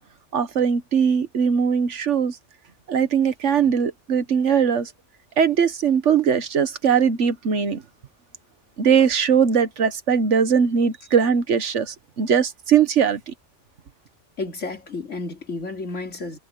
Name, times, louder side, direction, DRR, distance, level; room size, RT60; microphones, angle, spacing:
voice 1, 0.3-2.4 2.9-4.9 5.4-7.8 8.8-13.3, right 7 dB, 75° right, 1.5 m, -20 dB
voice 2, 14.4-16.4, left 3 dB, 80° left, 3.3 m, -31 dB
omnidirectional pair, 1.2 m